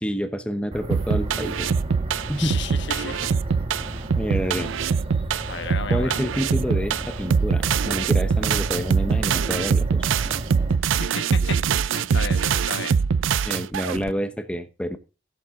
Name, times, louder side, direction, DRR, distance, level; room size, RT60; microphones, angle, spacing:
voice 1, 0.0-1.7 2.3-2.6 4.2-4.7 5.9-10.0 13.4-15.0, equal, 5° left, 0.9 m, -28 dB
sound 1, 0.7-10.8, right 1 dB, 30° right, 1.7 m, -34 dB
sound 2, 0.9-14.1, right 6 dB, 85° right, 0.4 m, -23 dB
voice 2, 2.4-3.3 5.5-6.2 11.0-11.6 11.9-13.0, left 5 dB, 65° left, 1.4 m, -33 dB
15.5 x 7.6 x 3.7 m
head